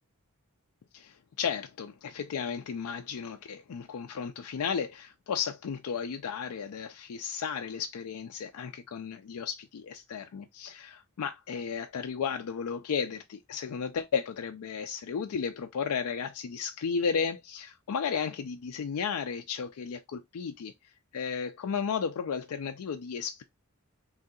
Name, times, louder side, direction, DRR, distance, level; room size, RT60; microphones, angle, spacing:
voice 1, 0.9-20.7 21.1-23.4, left 6 dB, 85° left, 0.4 m, -34 dB
3.2 x 2.7 x 3.8 m
head